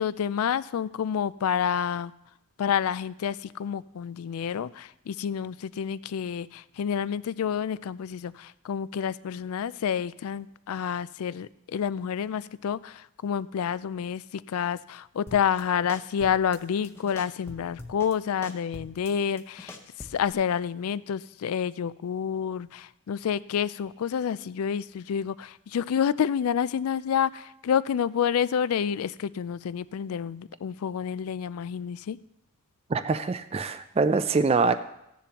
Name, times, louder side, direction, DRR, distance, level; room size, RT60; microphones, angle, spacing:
voice 1, 0.0-2.1 2.6-32.2, left 8 dB, 75° left, 18 dB, 0.3 m, -29 dB
sound 1, 15.3-15.6 15.9-16.6 16.8-18.1 18.4-20.3, left 1 dB, 10° left, 0.8 m, -44 dB
voice 2, 32.9-34.7, right 4 dB, 25° right, 10 dB, 0.4 m, -24 dB
15.0 x 10.0 x 2.9 m, 0.82 s
head